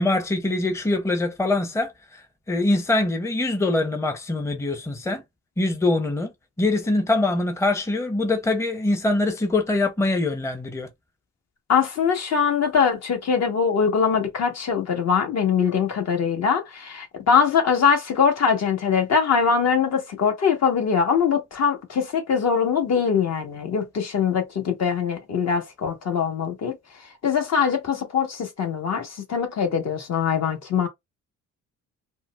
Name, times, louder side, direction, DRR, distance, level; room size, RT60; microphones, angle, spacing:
voice 1, 0.0-2.2 2.5-5.2 5.6-6.3 6.6-10.9, left 2 dB, 10° left, 0.7 m, -23 dB
voice 2, 11.7-26.7 27.2-30.9, left 6 dB, 60° left, 1.3 m, -22 dB
4.4 x 2.0 x 2.3 m
cardioid pair, 90°, 30 cm